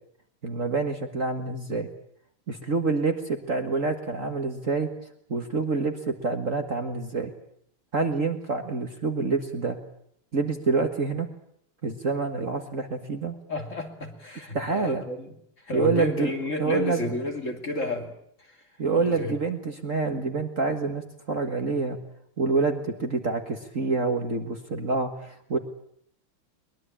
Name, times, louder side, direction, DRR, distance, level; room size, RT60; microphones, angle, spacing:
voice 1, 0.4-1.9 2.5-4.9 5.3-7.3 7.9-9.8 10.3-11.3 11.8-13.3 14.5-15.0 15.7-16.3 16.6-17.1 18.8-22.0 22.4-25.6, right 4 dB, 40° right, 5 dB, 1.9 m, -27 dB
voice 2, 13.5-15.3 15.6-18.1 18.9-19.3, left 2 dB, 35° left, 3 dB, 3.2 m, -31 dB
23.0 x 21.5 x 8.7 m, 0.70 s
omnidirectional pair, 2.3 m